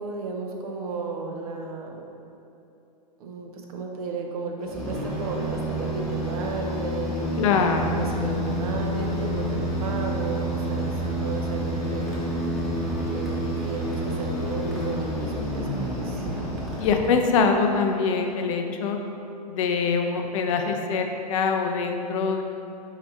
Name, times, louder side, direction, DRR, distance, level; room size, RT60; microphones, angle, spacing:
voice 1, 0.0-2.0 3.2-7.4 7.9-12.2 13.1-15.7 16.0-16.3, right 4 dB, 60° right, 2 dB, 0.6 m, -34 dB
sound 1, 4.7-17.5, right 1 dB, ahead, 0.9 m, -29 dB
voice 2, 7.4-8.0 16.8-19.0 19.5-22.4, left 5 dB, 50° left, 4 dB, 0.4 m, -24 dB
4.7 x 2.7 x 3.3 m, 2.8 s
figure-of-eight pair, 100°, 21 cm